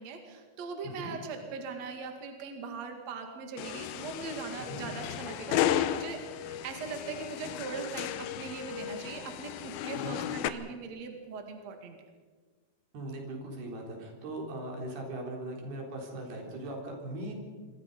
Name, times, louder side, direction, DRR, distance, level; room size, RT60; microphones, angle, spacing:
voice 1, 0.0-8.1 8.4-12.0, right 4 dB, 50° right, 4 dB, 3.0 m, -40 dB
voice 2, 0.8-1.1 4.7-4.9 9.9-10.2 12.9-17.4, right 1 dB, 80° right, 1 dB, 5.8 m, -39 dB
sound 1, 3.6-10.5, left 11 dB, 75° left, 2.6 m, -34 dB
26.5 x 23.0 x 5.4 m, 1.5 s
omnidirectional pair, 4.4 m